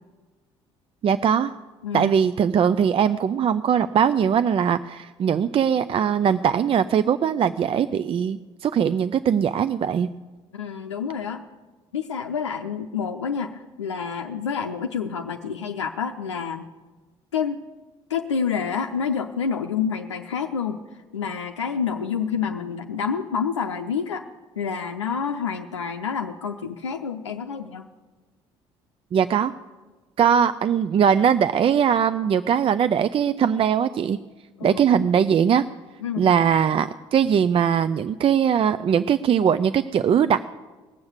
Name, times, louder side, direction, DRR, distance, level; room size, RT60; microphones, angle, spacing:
voice 1, 1.0-1.5 1.9-10.1 29.1-29.5 30.2-34.2 34.6-35.7 36.2-40.5, right 8 dB, 40° right, 12 dB, 0.5 m, -20 dB
voice 2, 1.8-2.1 10.5-11.4 11.9-16.6 17.3-17.6 18.1-20.8 21.1-24.3 24.6-27.9 34.6-34.8 36.0-36.2, left 6 dB, 90° left, 4 dB, 0.5 m, -28 dB
19.0 x 7.1 x 8.0 m, 1.3 s
hypercardioid pair, 55°, 15 cm